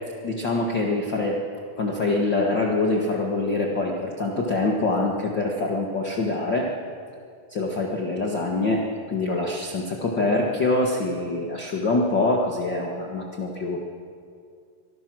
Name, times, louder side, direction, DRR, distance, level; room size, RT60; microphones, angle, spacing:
voice 1, 0.2-1.4 1.8-6.7 7.5-13.8, left 2 dB, 60° left, 0 dB, 1.1 m, -25 dB
25.5 x 19.5 x 6.3 m, 2.3 s
omnidirectional pair, 4.8 m